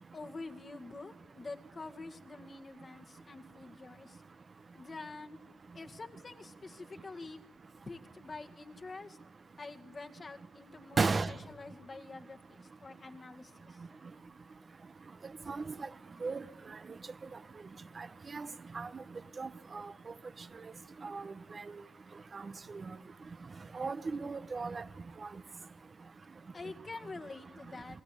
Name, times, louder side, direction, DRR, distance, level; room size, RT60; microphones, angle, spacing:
voice 1, 0.1-4.2 4.7-5.4 5.7-7.4 7.9-9.2 9.6-13.8 26.5-28.0, left 3 dB, 45° left, 2.0 m, -47 dB
voice 2, 11.0-11.3 15.5-15.9 16.2-16.4 18.0-18.1 18.3-18.5 18.7-19.0 19.4-19.8 21.0-21.3 22.3-22.4 22.7-22.8 23.7-24.8, right 4 dB, 45° right, 0.9 m, -34 dB
30.0 x 19.0 x 8.6 m
cardioid pair, 60°, 0 cm